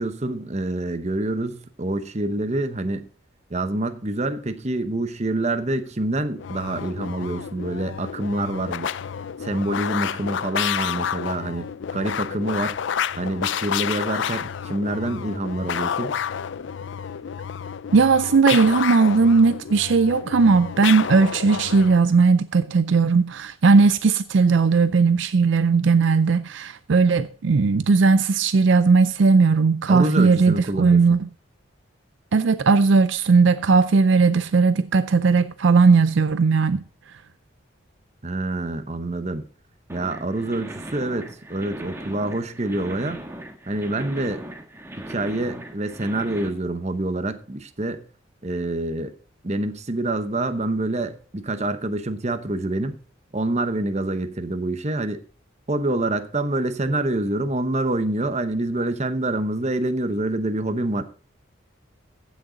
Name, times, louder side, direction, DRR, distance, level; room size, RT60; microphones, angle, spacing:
voice 1, 0.0-3.1 3.5-8.9 9.4-11.7 11.9-12.8 13.2-16.2 29.9-31.0 38.2-39.5 39.9-43.2 43.7-44.4 45.1-48.0 48.4-49.1 49.4-52.9 53.3-55.2 55.7-61.0, right 2 dB, 35° right, 0.9 m, -26 dB
sound 1, 6.4-22.1, left 8 dB, 65° left, 0.4 m, -30 dB
voice 2, 17.9-31.3 32.3-36.8, right 4 dB, 65° right, 0.4 m, -17 dB
sound 2, 39.9-46.5, right 1 dB, 10° right, 1.4 m, -38 dB
15.0 x 6.5 x 3.9 m
head